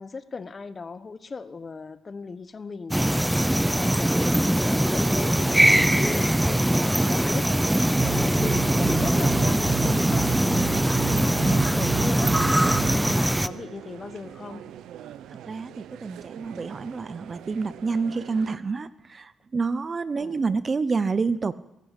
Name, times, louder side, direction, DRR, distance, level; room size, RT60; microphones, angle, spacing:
voice 1, 0.0-3.1 3.6-7.5 7.9-12.3 12.8-14.6 20.1-20.4, left 4 dB, 35° left, 13 dB, 1.3 m, -37 dB
sound 1, 2.9-13.5, right 1 dB, 5° right, 0.7 m, -22 dB
sound 2, 4.9-18.6, right 11 dB, 80° right, 0.9 m, -44 dB
sound 3, 8.0-13.1, right 9 dB, 60° right, 1.3 m, -31 dB
voice 2, 15.3-21.5, right 4 dB, 35° right, 16 dB, 0.9 m, -29 dB
23.5 x 14.5 x 8.4 m, 0.92 s
cardioid pair, 90°, 0 cm